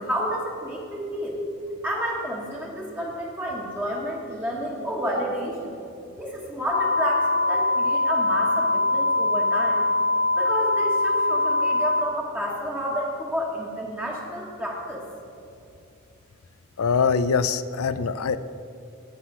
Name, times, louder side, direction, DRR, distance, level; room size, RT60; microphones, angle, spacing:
voice 1, 0.0-1.4 1.8-5.7 6.2-9.8 10.4-15.0, equal, 10° right, -4 dB, 1.4 m, -30 dB
sound 1, 6.7-12.0, left 2 dB, 30° left, 0.4 m, -22 dB
voice 2, 16.8-18.4, left 5 dB, 85° left, 14 dB, 0.5 m, -23 dB
16.0 x 5.9 x 6.1 m, 2.6 s
head